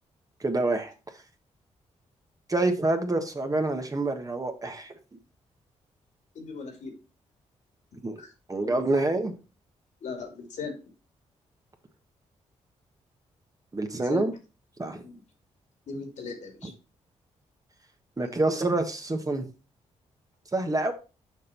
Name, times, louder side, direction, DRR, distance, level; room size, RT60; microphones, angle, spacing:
voice 1, 0.4-0.9 2.5-4.9 8.0-8.2 8.5-9.4 13.7-14.3 14.8-15.0 16.6-16.7 18.2-19.5 20.5-20.9, right 2 dB, 30° right, 5 dB, 1.5 m, -27 dB
voice 2, 6.3-6.9 8.2-8.3 8.6-9.0 10.0-10.7 14.0-14.3 15.0-15.2 15.9-16.7, left 4 dB, 70° left, 4 dB, 2.6 m, -38 dB
6.7 x 5.1 x 4.4 m, 0.32 s
cardioid pair, 60°, 13 cm